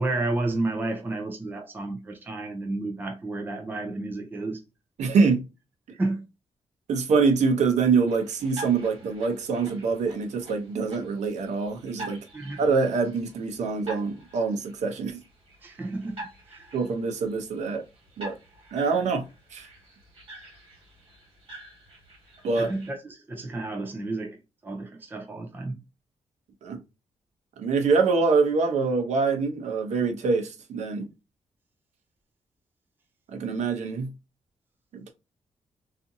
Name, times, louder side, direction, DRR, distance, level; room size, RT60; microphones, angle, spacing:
voice 1, 0.0-4.6 6.0-6.2 12.3-12.6 15.6-16.2 16.5-16.7 22.6-24.4 24.6-25.7, right 2 dB, 15° right, 0.4 m, -31 dB
voice 2, 5.0-5.4 6.9-12.2 12.6-15.2 16.7-17.8 18.2-18.3 18.7-19.2 19.5-19.7 22.4-22.7 26.6-26.8 27.6-31.1 33.3-34.1 34.9-35.1, right 4 dB, 90° right, 0.6 m, -25 dB
sound 1, 8.1-22.9, right 2 dB, 55° right, 1.5 m, -46 dB
2.6 x 2.5 x 2.6 m
wide cardioid pair, 175°, 12 cm